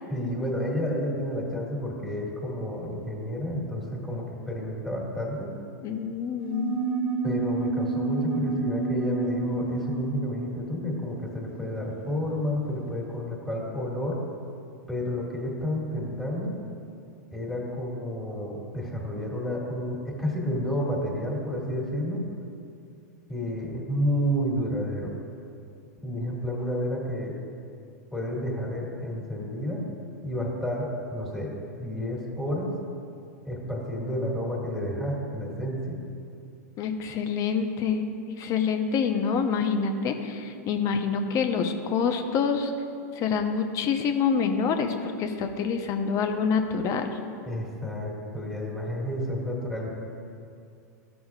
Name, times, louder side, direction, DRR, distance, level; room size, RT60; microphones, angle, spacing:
voice 1, 0.1-5.6 7.2-14.2 14.9-16.6 17.3-22.3 23.3-25.1 26.0-27.4 28.1-29.9 30.2-32.8 33.4-36.0 47.4-50.0, equal, ahead, -4 dB, 2.0 m, -30 dB
voice 2, 5.8-6.7 36.8-38.0 38.4-42.7 43.2-47.1, left 6 dB, 35° left, 6 dB, 0.7 m, -26 dB
sound 1, 6.4-12.4, right 3 dB, 50° right, 1.1 m, -30 dB
13.5 x 6.1 x 2.4 m, 2.4 s
hypercardioid pair, 115°, 9 cm